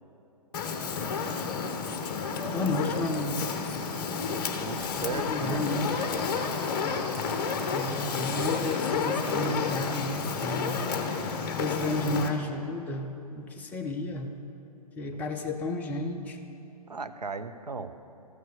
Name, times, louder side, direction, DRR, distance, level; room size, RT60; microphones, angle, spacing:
Fire, 0.5-12.3, left 5 dB, 35° left, 1.0 m, -31 dB
voice 1, 2.4-3.4 5.1-5.9 7.6-14.3 15.0-16.4, left 2 dB, 10° left, 2 dB, 0.5 m, -32 dB
voice 2, 4.6-5.6 16.9-17.9, right 4 dB, 85° right, 9 dB, 0.6 m, -36 dB
14.0 x 6.5 x 6.5 m, 2.8 s
figure-of-eight pair, 125°, 20 cm